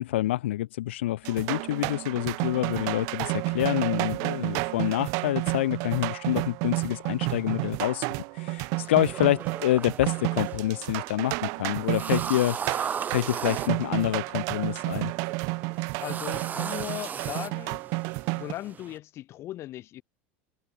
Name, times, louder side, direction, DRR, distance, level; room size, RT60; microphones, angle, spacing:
voice 1, 0.0-8.1 8.3-15.1, left 15 dB, 90° left, 0.8 m, -27 dB
sound 1, 1.2-18.5, right 31 dB, 60° right, 2.8 m, -31 dB
sound 2, 8.8-19.0, right 7 dB, 25° right, 5.1 m, -38 dB
voice 2, 16.0-17.8 18.3-20.0, left 14 dB, 45° left, 6.0 m, -38 dB
supercardioid pair, 120°, 6 cm